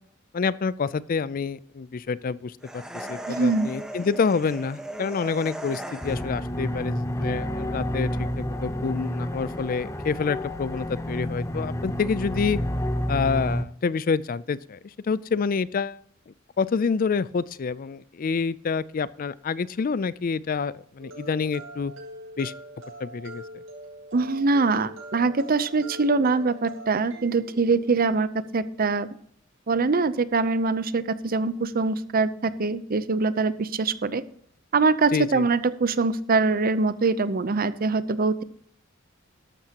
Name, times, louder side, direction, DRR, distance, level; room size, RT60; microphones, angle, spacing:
voice 1, 0.3-12.6 13.1-14.8 15.1-16.0 16.6-21.9 22.4-22.5 23.0-23.4 35.1-35.5, left 5 dB, 45° left, 19 dB, 0.4 m, -27 dB
sound 1, 2.6-6.5, right 1 dB, 5° right, 1.2 m, -37 dB
voice 2, 3.3-3.7 24.1-29.1 29.7-34.2 34.7-38.4, right 3 dB, 45° right, 15 dB, 0.6 m, -23 dB
sound 2, 6.0-13.6, equal, 15° left, 0.8 m, -29 dB
sound 3, 21.0-28.0, right 1 dB, 80° right, 5.9 m, -43 dB
13.5 x 12.0 x 2.9 m, 0.63 s
head